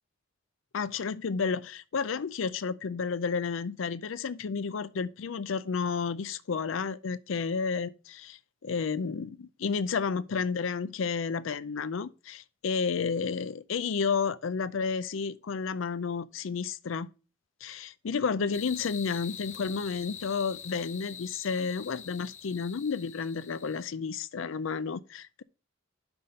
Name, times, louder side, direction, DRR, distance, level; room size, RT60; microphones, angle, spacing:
voice 1, 0.7-17.1 17.6-25.4, left 5 dB, 75° left, 0.5 m, -31 dB
sound 1, 18.5-23.9, left 8 dB, 40° left, 0.6 m, -45 dB
6.0 x 5.4 x 6.4 m
head